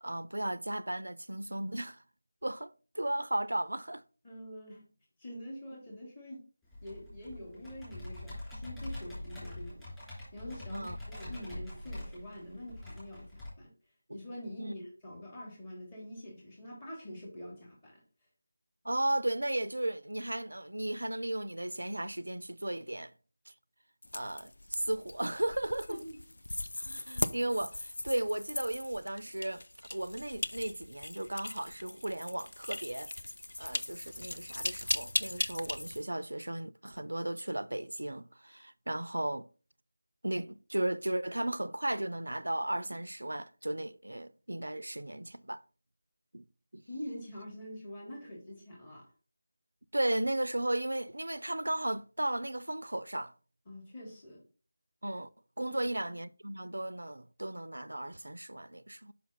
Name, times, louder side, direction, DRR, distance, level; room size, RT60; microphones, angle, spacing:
voice 1, 0.0-2.0 2.4-4.0 10.7-11.0 14.1-14.2 14.6-14.7 18.8-23.1 24.1-26.0 26.8-29.6 29.9-33.1 33.6-39.5 40.2-45.6 46.3-46.4 46.7-46.8 49.9-53.3 55.0-55.3 55.6-59.1, right 1 dB, 80° right, 0.4 m, -35 dB
voice 2, 4.2-4.9 5.2-6.4 6.8-9.9 10.3-13.7 14.1-18.0 25.9-26.2 46.9-49.1 53.7-54.4 55.7-55.8, equal, 20° left, 3.2 m, -45 dB
Computer keyboard, 6.7-13.5, left 1 dB, 5° left, 2.9 m, -44 dB
sound 1, 24.0-36.0, left 2 dB, 65° left, 0.5 m, -39 dB
6.0 x 5.7 x 4.2 m
figure-of-eight pair, 165°, 0 cm